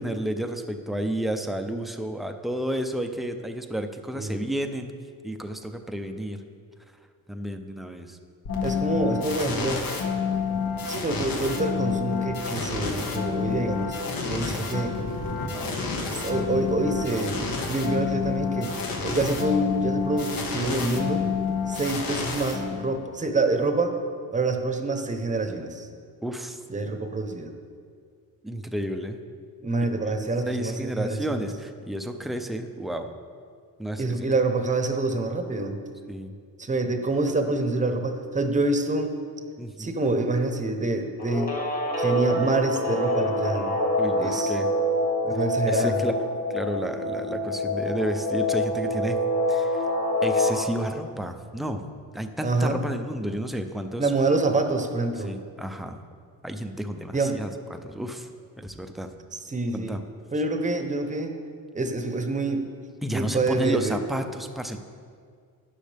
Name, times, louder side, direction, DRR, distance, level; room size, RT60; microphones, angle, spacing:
voice 1, 0.0-4.9 5.2-6.4 7.3-8.2 9.5-9.6 14.5-14.8 15.3-15.7 26.2-26.6 28.4-29.2 30.0-30.2 30.4-33.1 33.8-34.3 36.1-36.3 39.6-39.9 44.0-44.7 45.7-49.2 49.5-49.8 50.2-51.8 52.1-54.1 55.2-56.0 56.4-58.3 58.6-59.1 59.7-60.0 63.0-64.8, right 1 dB, ahead, 5 dB, 0.4 m, -31 dB
sound 1, 8.5-23.1, left 5 dB, 70° left, 1.5 m, -29 dB
voice 2, 8.6-9.9 10.9-14.0 14.3-15.0 16.1-17.4 17.7-18.7 19.0-21.3 21.7-23.9 24.3-25.9 26.7-27.5 29.6-31.4 34.0-35.8 36.6-39.1 39.8-41.5 42.0-43.7 44.2-44.6 45.2-46.0 52.4-52.8 54.0-55.3 57.1-57.4 59.3-60.0 60.3-61.3 61.7-62.7 63.1-64.0, right 2 dB, 20° right, 6 dB, 0.8 m, -26 dB
Guitar, 41.2-50.6, left 1 dB, 25° left, 1.1 m, -26 dB
12.0 x 9.7 x 3.4 m, 2.2 s
cardioid pair, 145°, 36 cm